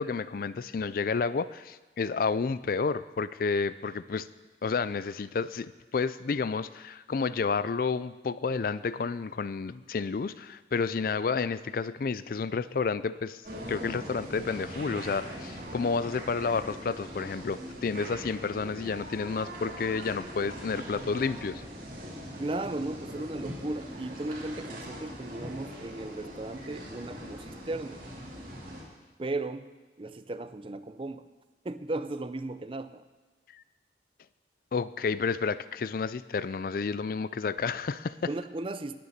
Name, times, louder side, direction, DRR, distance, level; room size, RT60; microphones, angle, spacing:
voice 1, 0.0-4.3 4.6-13.4 13.7-21.6 33.5-33.6 34.7-38.3, left 5 dB, 50° left, 16 dB, 0.4 m, -30 dB
sound 1, 13.4-28.8, equal, 50° right, 3.1 m, -41 dB
voice 2, 22.4-28.0 29.2-29.7 30.0-31.2 31.6-33.0 38.3-39.0, right 2 dB, 30° right, 12 dB, 0.5 m, -36 dB
19.0 x 6.9 x 6.6 m, 1.3 s
head